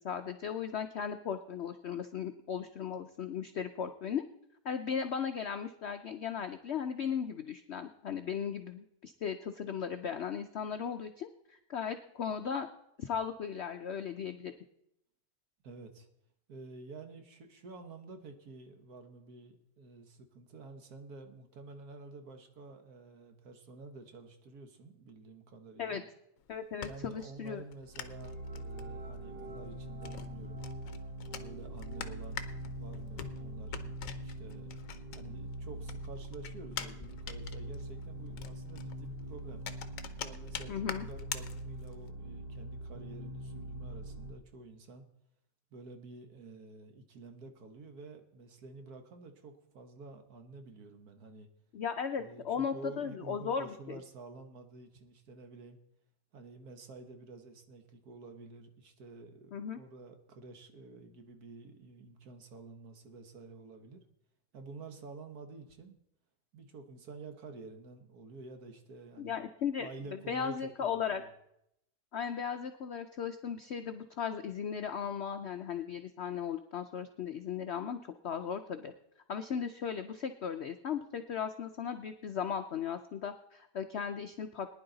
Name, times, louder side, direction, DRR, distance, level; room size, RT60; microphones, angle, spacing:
voice 1, 0.0-4.2 4.6-12.7 13.0-14.5 25.8-26.0 26.5-27.6 40.7-41.1 51.7-54.0 59.5-59.8 69.2-69.9 70.3-71.2 72.1-78.9 79.3-84.7, left 7 dB, 80° left, 8 dB, 0.6 m, -37 dB
voice 2, 15.6-16.1 16.5-26.1 26.8-30.6 31.3-34.7 35.1-39.6 40.2-45.0 45.7-51.5 52.2-55.8 56.3-64.0 64.5-66.0 66.5-69.3 69.8-71.3, right 3 dB, 60° right, 6 dB, 1.6 m, -50 dB
sound 1, 26.4-35.5 35.8-42.1, left 8 dB, 60° left, 1.0 m, -45 dB
sound 2, 27.9-44.3, right 1 dB, 35° right, 1.3 m, -43 dB
19.0 x 10.5 x 3.9 m, 0.80 s
omnidirectional pair, 1.9 m